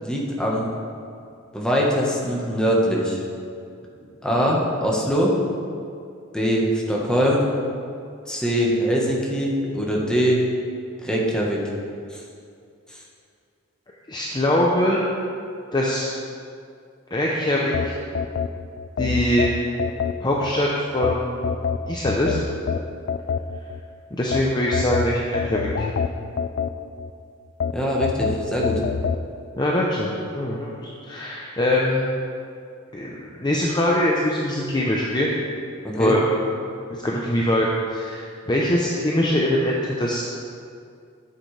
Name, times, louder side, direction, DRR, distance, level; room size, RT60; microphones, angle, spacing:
voice 1, 0.0-0.7 1.5-3.2 4.2-5.3 6.3-7.4 8.3-10.4 11.0-11.6 27.7-28.8 35.8-36.2, equal, 5° left, -3 dB, 1.3 m, -22 dB
voice 2, 14.1-15.0 15.7-16.1 17.1-17.9 19.0-19.5 20.2-20.7 20.9-21.5 21.9-22.4 24.1-25.9 29.6-30.1 30.3-32.1 32.9-35.3 36.0-36.2 36.9-40.2, left 1 dB, 20° left, -3 dB, 0.7 m, -22 dB
sound 1, 17.7-20.5 21.0-23.8 24.3-27.1 27.6-29.2, left 6 dB, 50° left, 0.3 m, -26 dB
12.5 x 7.8 x 3.3 m, 2.4 s
head